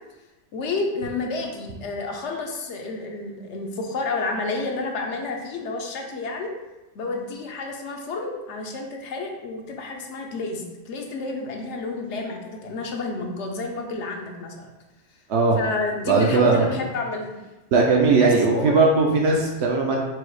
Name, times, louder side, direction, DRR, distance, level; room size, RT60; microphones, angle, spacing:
voice 1, 0.5-6.5 6.9-14.7 15.6-17.4 18.2-18.9, left 3 dB, 75° left, 2 dB, 1.0 m, -30 dB
voice 2, 16.0-16.7 17.7-20.0, right 3 dB, 70° right, -1 dB, 0.8 m, -18 dB
4.6 x 2.0 x 4.6 m, 1.1 s
omnidirectional pair, 1.2 m